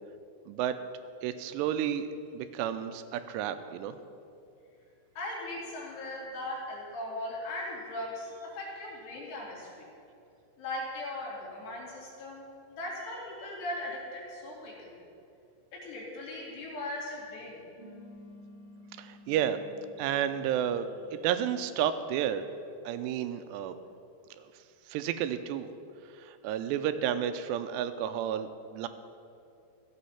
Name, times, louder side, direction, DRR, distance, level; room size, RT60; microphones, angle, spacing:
voice 1, 1.2-2.1 2.3-4.0 19.0-19.6 20.0-22.4 22.9-23.8 24.4-24.5 24.9-25.7 26.3-28.9, right 10 dB, 85° right, 10 dB, 2.7 m, -31 dB
voice 2, 5.2-9.9 10.6-15.0 15.7-17.6, left 1 dB, 75° left, -5 dB, 4.8 m, -39 dB
sound 1, 17.8-22.7, left 1 dB, 10° right, 1.8 m, -53 dB
14.5 x 8.5 x 5.7 m, 2.5 s
omnidirectional pair, 4.9 m